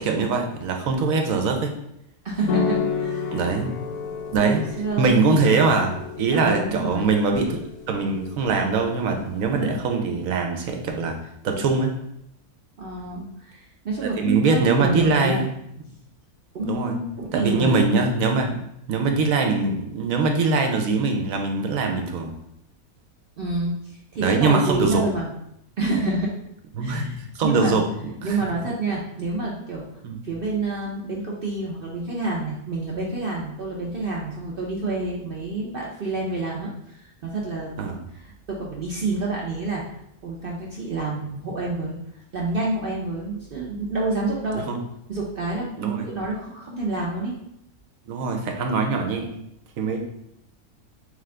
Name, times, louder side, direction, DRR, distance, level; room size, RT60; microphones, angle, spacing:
voice 1, 0.0-1.7 3.3-3.7 4.3-4.6 5.0-7.6 7.9-11.2 11.4-12.0 14.0-15.5 16.6-17.0 17.3-18.6 18.9-22.3 24.2-25.0 26.7-27.1 27.3-27.8 28.2-28.4 30.0-30.2 37.8-38.0 44.5-44.8 45.8-46.1 48.1-49.3 49.8-50.0, right 4 dB, 70° right, 3 dB, 1.0 m, -22 dB
voice 2, 2.2-3.4 4.4-5.2 6.3-7.1 12.8-15.4 16.5-17.8 23.4-25.3 25.8-26.3 26.8-27.1 27.4-27.8 28.2-29.8 30.2-39.8 40.2-42.0 42.3-44.7 45.1-47.4, right 2 dB, 55° right, -3 dB, 0.6 m, -28 dB
sound 1, 2.5-9.8, left 6 dB, 85° left, 1.2 m, -31 dB
3.7 x 3.4 x 3.3 m, 0.78 s
omnidirectional pair, 1.5 m